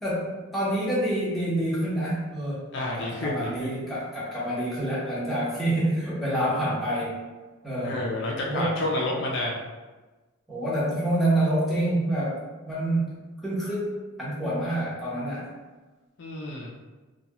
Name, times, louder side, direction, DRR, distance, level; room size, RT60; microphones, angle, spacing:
voice 1, 0.0-2.6 3.0-7.1 7.6-8.0 8.4-8.8 10.5-12.4 12.7-13.9 14.2-15.5, right 1 dB, ahead, -10 dB, 0.8 m, -27 dB
voice 2, 2.7-3.7 7.8-9.6 16.2-16.7, left 1 dB, 55° left, -2 dB, 0.4 m, -29 dB
2.8 x 2.3 x 2.8 m, 1.2 s
head